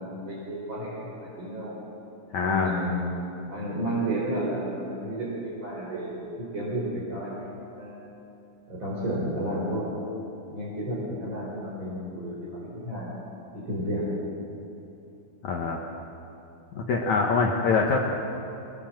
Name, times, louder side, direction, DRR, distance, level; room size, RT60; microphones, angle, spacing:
voice 1, 0.0-1.7 2.4-3.1 3.5-8.1 8.7-9.9 10.5-13.1 13.5-14.0, right 1 dB, 25° right, -6 dB, 4.6 m, -32 dB
voice 2, 2.3-2.7 15.4-15.8 16.7-18.0, left 4 dB, 75° left, 0 dB, 1.6 m, -24 dB
24.0 x 20.0 x 7.6 m, 2.9 s
omnidirectional pair, 5.5 m